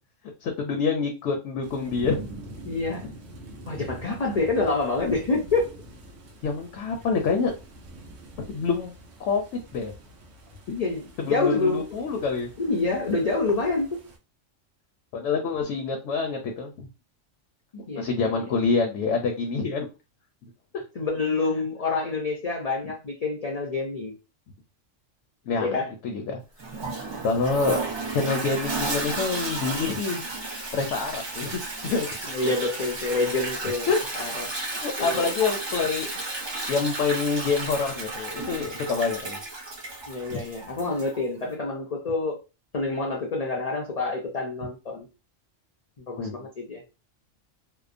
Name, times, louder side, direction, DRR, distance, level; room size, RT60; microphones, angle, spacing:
voice 1, 0.4-2.2 3.0-3.1 6.4-7.5 8.4-8.9 9.2-9.4 9.7-9.9 11.2-12.5 15.1-16.9 18.0-19.9 20.7-20.8 25.5-25.8 26.0-26.4 27.2-27.8 28.1-30.2 30.7-32.5 33.9-34.0 34.7-36.1 36.7-39.4 40.3-40.4 46.2-46.5, left 4 dB, 75° left, 3 dB, 0.9 m, -26 dB
sound 1, 1.6-14.2, right 1 dB, 85° right, 1.0 m, -44 dB
voice 2, 2.6-3.1 3.7-5.7 10.7-11.9 12.6-14.0 17.7-18.5 21.0-24.1 25.6-25.9 32.3-33.9 34.1-34.5 35.0-35.3 40.1-42.4 42.7-45.1 46.0-46.8, left 3 dB, 55° left, 0 dB, 0.4 m, -27 dB
Toilet flush, 26.6-41.2, right 3 dB, 40° right, 0.4 m, -33 dB
2.8 x 2.0 x 2.4 m, 0.29 s
omnidirectional pair, 1.3 m